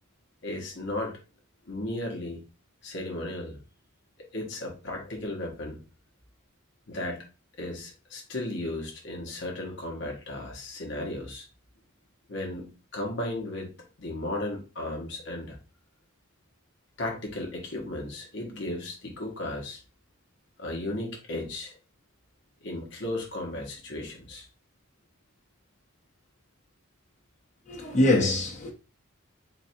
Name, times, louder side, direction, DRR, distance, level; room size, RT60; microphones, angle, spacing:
voice 1, 0.4-1.1 1.7-2.4 2.8-3.6 4.3-5.8 6.9-7.2 7.6-11.5 12.3-13.7 14.0-15.6 17.0-19.8 20.6-21.8 22.6-24.5, left 1 dB, 60° left, 1.0 m, -35 dB
voice 2, 27.7-28.7, left 1 dB, 35° left, 1.0 m, -23 dB
3.9 x 2.4 x 4.1 m
head